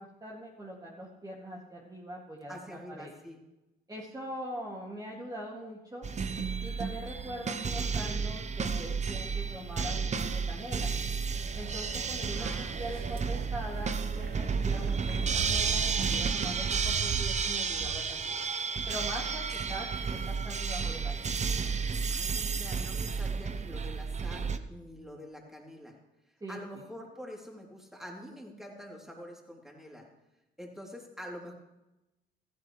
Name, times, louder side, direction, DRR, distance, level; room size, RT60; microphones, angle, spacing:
voice 1, 0.0-3.1 3.9-6.1 6.6-10.9 11.5-18.4 18.9-21.3 26.4-26.6, right 1 dB, 20° right, -4 dB, 2.4 m, -42 dB
voice 2, 2.5-3.4 12.4-12.8 22.1-26.0 26.5-30.1 30.6-31.5, equal, ahead, -1 dB, 3.2 m, -46 dB
sound 1, 6.0-24.6, right 5 dB, 35° right, 0.8 m, -32 dB
sound 2, 11.3-16.5, right 5 dB, 50° right, 1.1 m, -43 dB
16.0 x 14.5 x 3.3 m, 0.97 s
cardioid pair, 90°, 20 cm